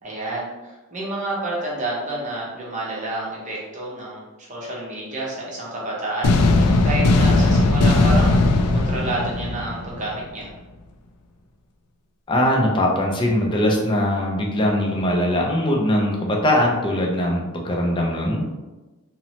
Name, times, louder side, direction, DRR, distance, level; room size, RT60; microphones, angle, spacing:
voice 1, 0.0-6.3 6.8-8.4 8.7-10.5, right 2 dB, 35° right, -5 dB, 0.7 m, -29 dB
sound 1, 6.2-10.2, left 2 dB, 90° left, 0.3 m, -18 dB
voice 2, 12.3-18.4, left 1 dB, 20° left, -1 dB, 0.4 m, -21 dB
2.9 x 2.0 x 2.8 m, 1.1 s
head